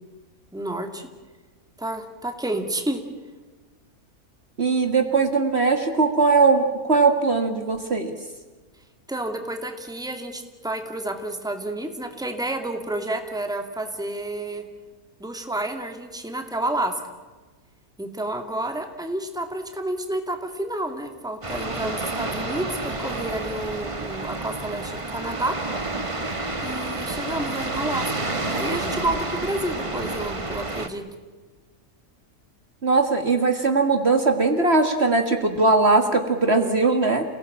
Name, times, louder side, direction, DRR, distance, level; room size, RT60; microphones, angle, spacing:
voice 1, 0.5-1.1 1.8-3.0 9.1-14.6 15.2-16.9 18.0-25.5 26.6-28.2 28.5-31.0, right 1 dB, ahead, 5 dB, 2.3 m, -30 dB
voice 2, 4.6-8.2 32.8-37.2, right 3 dB, 45° right, 6 dB, 2.2 m, -20 dB
sound 1, 21.4-30.9, right 2 dB, 20° right, 1.5 m, -29 dB
29.0 x 18.0 x 8.8 m, 1.3 s
omnidirectional pair, 1.6 m